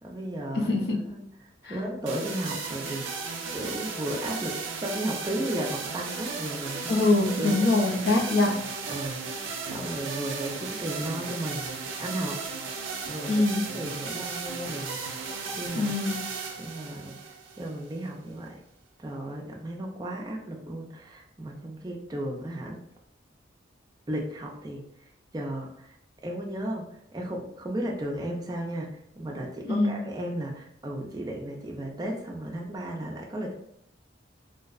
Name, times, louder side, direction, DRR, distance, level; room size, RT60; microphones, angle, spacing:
voice 1, 0.0-0.7 1.1-1.2 1.6-3.2 3.5-7.0 7.4-7.7 8.9-9.2 9.7-12.4 13.1-13.5 13.7-15.0 15.6-16.0 16.6-18.6 19.0-22.8 24.1-26.0 26.2-33.5, right 1 dB, 20° right, -1 dB, 0.4 m, -34 dB
voice 2, 0.5-1.0 1.6-1.8 6.9-8.6 13.3-13.6 15.7-16.2 29.7-30.0, left 2 dB, 55° left, 0 dB, 0.5 m, -23 dB
sound 1, 2.1-18.1, right 4 dB, 85° right, 0.4 m, -35 dB
2.5 x 2.0 x 2.3 m, 0.72 s
head